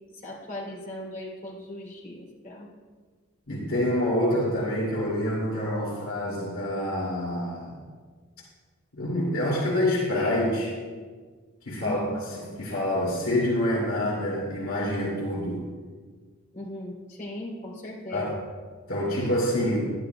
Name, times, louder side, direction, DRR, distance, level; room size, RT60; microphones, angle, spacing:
voice 1, 0.2-2.7 11.8-12.2 16.5-18.4, left 1 dB, 35° left, -5 dB, 3.1 m, -38 dB
voice 2, 3.5-7.8 8.9-10.8 11.6-15.6 18.1-18.4 18.9-19.9, left 1 dB, 65° left, -5 dB, 2.4 m, -27 dB
12.0 x 11.5 x 2.2 m, 1.5 s
head